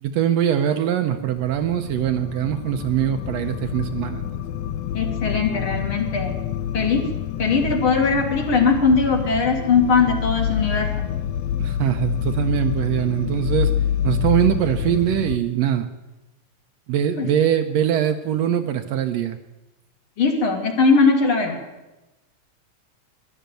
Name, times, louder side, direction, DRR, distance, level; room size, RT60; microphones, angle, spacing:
voice 1, 0.0-4.3 11.6-13.7 14.0-15.9 16.9-19.4, right 10 dB, 75° right, 8 dB, 1.7 m, -22 dB
sound 1, 1.4-15.4, left 10 dB, 75° left, 1.7 m, -27 dB
voice 2, 4.9-6.4 6.7-7.0 7.4-10.9 17.2-17.3 20.2-21.6, left 4 dB, 50° left, 3 dB, 2.3 m, -20 dB
12.5 x 11.0 x 9.0 m, 1.0 s
omnidirectional pair, 3.3 m